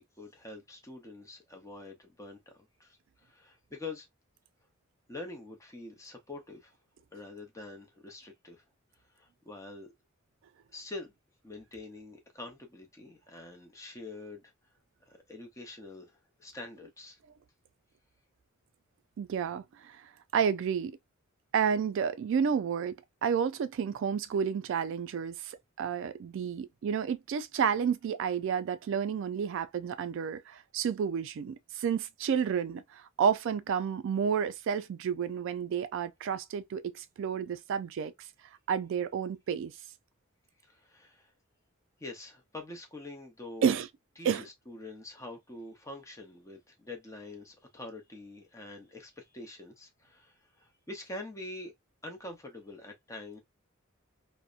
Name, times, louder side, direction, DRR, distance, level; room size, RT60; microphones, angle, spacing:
voice 1, 0.0-4.1 5.1-6.7 7.1-8.6 9.1-9.9 10.7-11.1 11.4-14.5 15.1-17.2 40.6-41.3 42.0-43.8 44.2-51.7 52.0-53.4, left 2 dB, 15° left, 0.7 m, -45 dB
voice 2, 19.2-20.0 20.3-21.0 21.5-23.0 23.2-38.1 38.7-39.7 43.6-43.9 44.2-44.4, right 7 dB, 65° right, 0.3 m, -30 dB
2.7 x 2.1 x 2.3 m
head